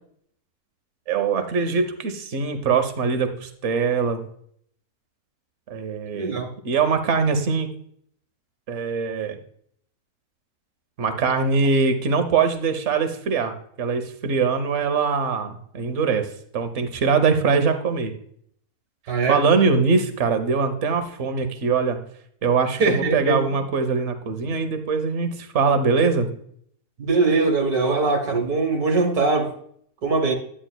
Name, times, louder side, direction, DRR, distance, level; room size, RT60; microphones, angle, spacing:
voice 1, 1.1-4.2 5.7-7.7 8.7-9.4 11.0-18.1 19.3-22.0 22.4-26.3, right 5 dB, 55° right, 8 dB, 1.1 m, -22 dB
voice 2, 6.1-6.5 19.1-19.4 22.8-23.4 27.0-29.5 30.0-30.3, right 3 dB, 70° right, 4 dB, 1.8 m, -21 dB
10.0 x 9.3 x 2.3 m, 0.64 s
omnidirectional pair, 1.7 m